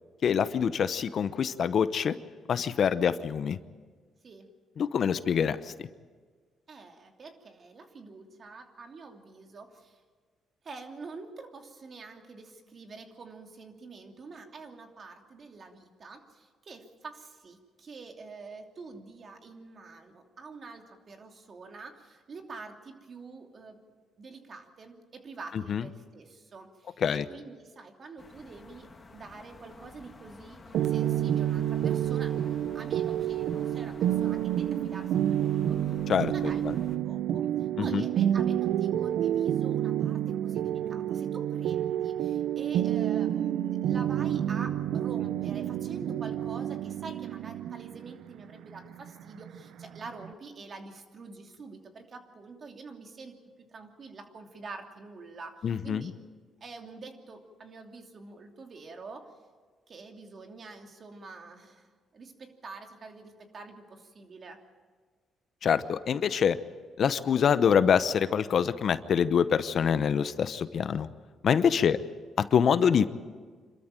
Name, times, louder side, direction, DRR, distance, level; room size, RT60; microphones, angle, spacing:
voice 1, 0.2-2.2 2.5-3.6 4.8-5.7 25.7-25.8 27.0-27.2 36.1-36.7 37.8-38.0 55.6-56.1 65.6-66.6 67.0-71.1 71.4-72.0 72.4-73.1, left 7 dB, 60° left, 13 dB, 0.8 m, -25 dB
voice 2, 6.7-10.0 10.6-23.8 24.2-27.0 27.3-36.0 36.3-56.1 56.6-59.3 59.9-64.6 71.7-71.9, right 4 dB, 45° right, 3 dB, 2.9 m, -46 dB
sound 1, 28.2-37.0, left 3 dB, 30° left, 2.3 m, -51 dB
sound 2, 30.7-50.3, right 11 dB, 80° right, 0.6 m, -29 dB
26.5 x 13.5 x 9.0 m, 1.5 s
cardioid pair, 90°, 0 cm